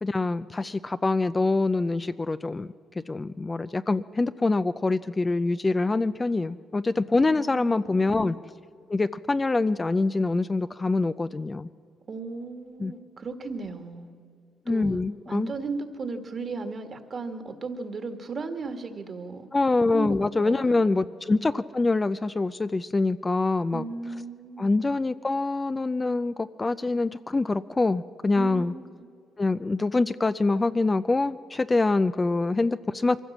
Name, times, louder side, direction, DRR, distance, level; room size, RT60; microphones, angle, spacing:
voice 1, 0.0-2.7 3.0-8.4 8.9-11.7 12.8-12.9 14.7-15.5 19.5-23.8 24.6-28.7 29.4-33.2, left 3 dB, 25° left, 12 dB, 0.4 m, -25 dB
voice 2, 7.2-8.2 12.1-14.1 14.7-15.0 15.3-19.5 19.9-21.0 23.7-24.7 28.3-29.1, right 4 dB, 45° right, 7 dB, 1.9 m, -36 dB
23.0 x 15.5 x 7.3 m, 2.4 s
cardioid pair, 80°, 0 cm